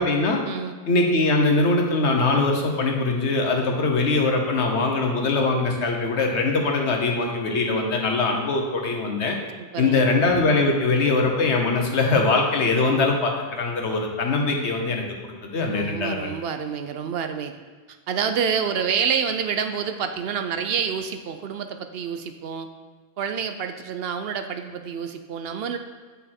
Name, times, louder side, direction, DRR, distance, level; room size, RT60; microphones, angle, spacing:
voice 1, 0.0-0.4 0.9-9.4 9.8-16.3, left 3 dB, 85° left, 2 dB, 1.4 m, -22 dB
voice 2, 9.6-10.0 15.7-17.5 17.9-22.7 23.2-25.8, right 7 dB, 70° right, 8 dB, 0.8 m, -28 dB
8.6 x 5.4 x 4.3 m, 1.5 s
omnidirectional pair, 1.1 m